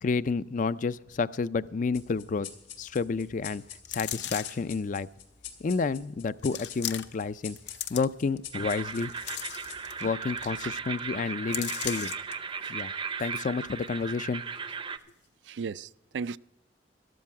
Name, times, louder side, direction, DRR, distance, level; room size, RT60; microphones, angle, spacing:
voice 1, 0.0-2.5 2.8-3.6 3.9-5.1 5.6-7.6 7.9-9.1 10.0-12.1 12.7-12.9 13.2-14.4, left 4 dB, 45° left, 0.4 m, -30 dB
sound 1, 1.9-10.8, left 8 dB, 85° left, 2.5 m, -47 dB
sound 2, 3.8-4.7 5.5-5.6 6.4-7.3 7.6-8.4 8.9-10.1 10.4-10.5 10.8-11.0 11.5-12.3 12.8-12.9, left 11 dB, 70° left, 0.7 m, -37 dB
sound 3, 8.5-15.0, right 5 dB, 30° right, 0.6 m, -36 dB
voice 2, 12.6-13.0 15.4-16.4, right 5 dB, 90° right, 0.4 m, -37 dB
13.0 x 13.0 x 4.7 m
head